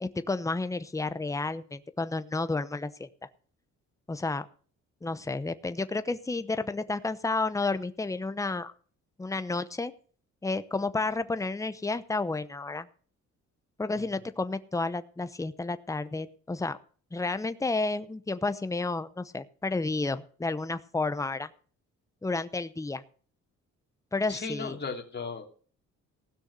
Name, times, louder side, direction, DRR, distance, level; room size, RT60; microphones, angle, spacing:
voice 1, 0.0-3.1 4.1-4.5 5.0-8.7 9.2-9.9 10.4-12.9 13.8-16.8 17.1-21.5 22.2-23.0 24.1-24.8, left 3 dB, 10° left, 13 dB, 0.8 m, -31 dB
voice 2, 24.3-25.5, left 4 dB, 35° left, 3 dB, 2.7 m, -36 dB
16.0 x 6.3 x 7.8 m, 0.43 s
cardioid pair, 90°, 30 cm